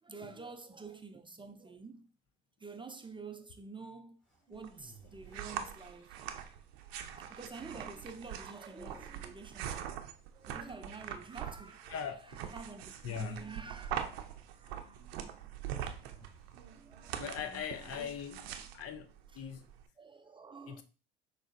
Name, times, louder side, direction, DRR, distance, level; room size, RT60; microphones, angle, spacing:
voice 1, 0.0-2.1 2.6-4.2 4.5-9.9 10.3-12.1 12.3-14.0 14.5-15.1 16.7-18.1 19.3-19.5 20.0-20.8, right 4 dB, 15° right, 0.6 m, -49 dB
sound 1, 4.2-6.2 7.5-8.0 8.6-9.3 10.4-11.7 13.2-14.4 16.0-16.8, right 1 dB, ahead, 2.5 m, -60 dB
sound 2, 4.5-19.8, right 9 dB, 80° right, 0.6 m, -43 dB
voice 2, 11.9-12.4 13.0-13.4 17.2-18.5 18.7-19.1 19.3-19.7 20.7-20.8, left 7 dB, 50° left, 0.7 m, -40 dB
6.1 x 3.1 x 2.6 m
hypercardioid pair, 65°, 30 cm